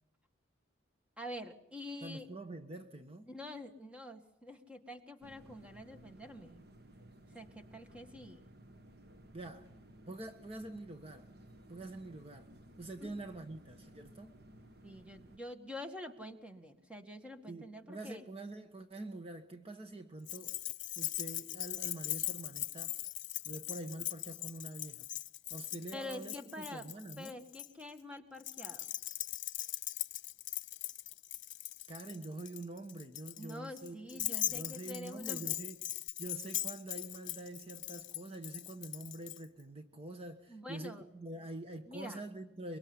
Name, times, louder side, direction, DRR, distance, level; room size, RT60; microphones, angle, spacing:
voice 1, 1.2-2.3 3.3-6.6 7.3-8.5 13.0-13.1 14.8-18.2 25.9-26.9 27.2-28.9 33.4-35.6 40.5-41.0 41.9-42.2, left 1 dB, 5° right, 2.0 m, -46 dB
voice 2, 2.0-3.3 9.3-9.8 10.1-11.3 11.7-12.5 12.8-14.4 17.5-23.0 23.4-25.1 25.5-27.4 31.9-35.9 36.2-42.8, right 2 dB, 30° right, 1.4 m, -46 dB
sound 1, 5.2-15.4, right 1 dB, 55° right, 1.7 m, -57 dB
Keys jangling, 20.3-27.7 28.4-39.4, left 16 dB, 70° left, 1.0 m, -40 dB
25.0 x 23.5 x 9.8 m
head